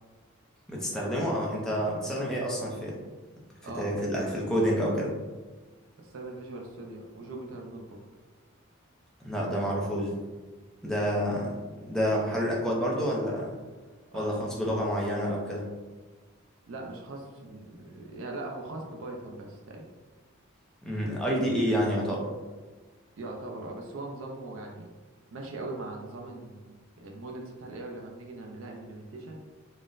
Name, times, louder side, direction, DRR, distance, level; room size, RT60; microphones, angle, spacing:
voice 1, 0.7-3.0 3.7-5.1 9.2-10.2 10.8-13.5 14.1-15.7 20.8-22.3, equal, 5° left, -4 dB, 0.5 m, -28 dB
voice 2, 3.6-4.4 6.0-8.0 14.1-14.5 16.7-19.9 23.2-24.9 25.3-29.4, right 2 dB, 65° right, 0 dB, 0.4 m, -40 dB
3.9 x 2.0 x 2.5 m, 1.3 s
head